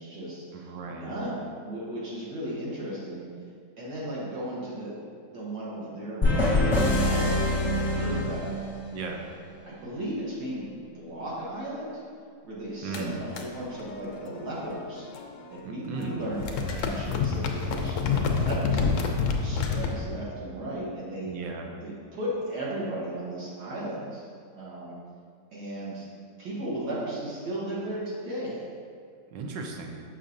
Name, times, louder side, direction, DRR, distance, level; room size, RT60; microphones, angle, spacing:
voice 1, 0.0-0.4 0.9-3.3 3.8-5.0 5.3-8.5 9.6-10.7 10.9-12.0 12.4-15.1 15.5-21.3 21.8-24.3 24.6-25.0 25.5-26.1 26.4-28.6, right 1 dB, 70° right, -7 dB, 1.8 m, -35 dB
voice 2, 0.5-1.1 7.9-8.2 8.9-9.2 12.8-13.2 15.6-16.2 19.7-19.8 21.2-21.7 29.3-29.9, right 4 dB, 85° right, 2 dB, 1.4 m, -36 dB
sound 1, 6.2-9.0, left 1 dB, 25° left, 0.5 m, -25 dB
sound 2, 12.9-15.6 15.8-19.9, left 5 dB, 75° left, 0.7 m, -29 dB
6.4 x 6.0 x 2.6 m, 2.2 s
omnidirectional pair, 1.9 m